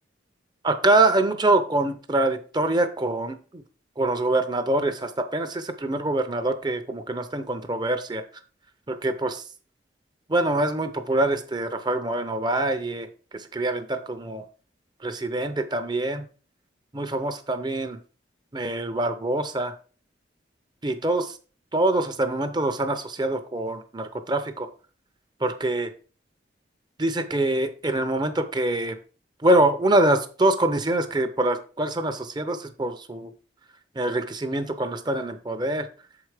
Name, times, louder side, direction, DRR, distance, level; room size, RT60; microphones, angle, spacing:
voice 1, 0.6-3.6 4.0-8.2 8.9-9.4 10.3-14.4 15.0-16.3 16.9-18.0 18.5-19.7 20.8-21.4 21.7-24.7 25.4-25.9 27.0-29.0 29.4-33.3 34.0-35.9, right 2 dB, 25° right, 8 dB, 0.7 m, -25 dB
7.1 x 4.8 x 4.8 m, 0.38 s
head